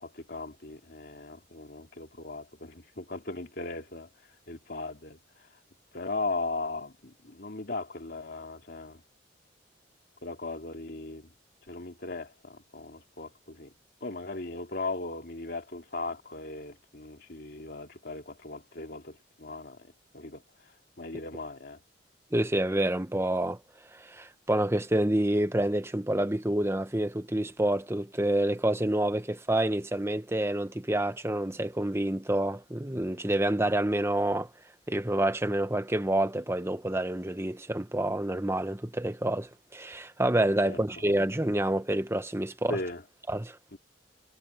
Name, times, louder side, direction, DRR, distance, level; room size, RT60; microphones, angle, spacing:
voice 1, 0.0-4.1 4.5-5.2 5.9-9.0 10.2-11.3 11.7-13.7 14.0-19.9 20.1-20.4 21.0-21.8 40.6-40.8 42.7-43.0 43.7-43.8, left 3 dB, 60° left, 2.8 m, -38 dB
voice 2, 22.3-23.6 23.9-34.5 34.9-42.8 43.3-43.6, right 1 dB, 15° right, 1.2 m, -28 dB
head